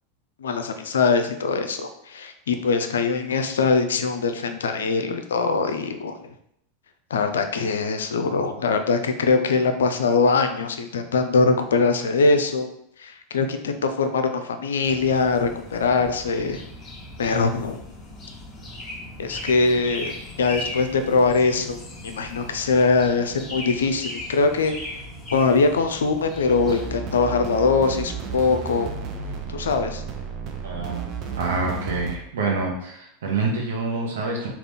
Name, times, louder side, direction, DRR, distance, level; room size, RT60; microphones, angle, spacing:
voice 1, 0.4-6.3 7.1-12.7 13.0-16.6 17.2-17.8 19.2-20.1 20.4-24.7 25.3-28.9 29.5-30.0, left 4 dB, 75° left, 7 dB, 0.4 m, -22 dB
sound 1, 14.8-27.0, left 1 dB, 25° left, 1.2 m, -38 dB
sound 2, 26.5-32.2, right 5 dB, 45° right, 0.6 m, -33 dB
voice 2, 30.6-31.1 31.4-34.5, right 3 dB, 70° right, -1 dB, 0.8 m, -26 dB
3.6 x 2.4 x 3.5 m, 0.75 s
figure-of-eight pair, 85°, 0 cm